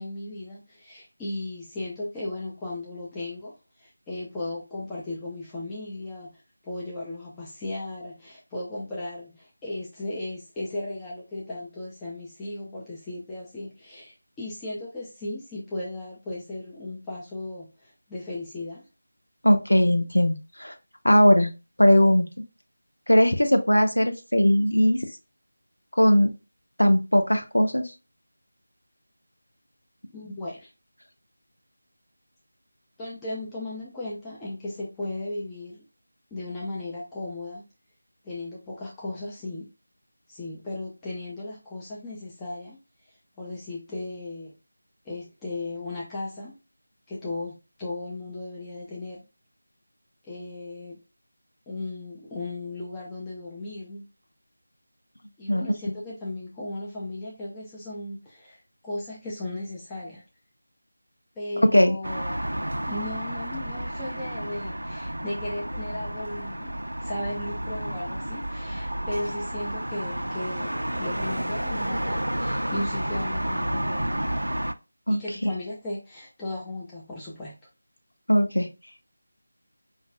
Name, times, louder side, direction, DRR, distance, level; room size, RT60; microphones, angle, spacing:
voice 1, 0.0-3.5 3.8-18.8 30.1-30.7 33.0-35.9 36.3-37.6 38.2-39.7 40.3-42.8 43.4-44.5 45.0-46.6 47.1-49.2 50.2-51.0 51.7-54.0 55.4-58.6 58.8-60.2 61.4-62.4 62.8-74.4 75.1-77.6, left 2 dB, 10° left, -6 dB, 0.5 m, -36 dB
voice 2, 19.4-20.7 21.0-21.5 21.8-22.3 23.1-25.0 25.9-26.3 26.8-27.9 55.5-55.6 61.7-62.0 75.1-75.5 78.3-78.7, equal, 80° left, 7 dB, 0.7 m, -19 dB
sound 1, 62.0-74.7, right 1 dB, 80° right, 0.4 m, -31 dB
5.2 x 2.4 x 2.2 m, 0.28 s
figure-of-eight pair, 165°, 0 cm